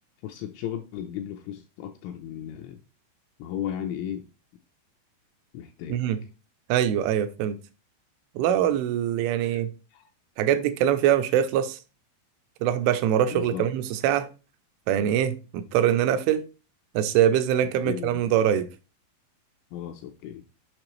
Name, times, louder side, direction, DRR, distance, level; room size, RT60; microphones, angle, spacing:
voice 1, 0.2-2.8 3.4-4.3 5.5-6.0 9.4-9.6 9.9-10.1 13.3-13.6 17.9-18.1 19.7-20.4, left 10 dB, 85° left, 2.8 m, -35 dB
voice 2, 5.9-6.2 6.7-7.6 8.4-9.7 10.4-11.8 12.6-14.3 14.9-16.4 17.0-18.7, right 10 dB, 85° right, 2.8 m, -23 dB
7.7 x 5.6 x 3.0 m
omnidirectional pair, 5.9 m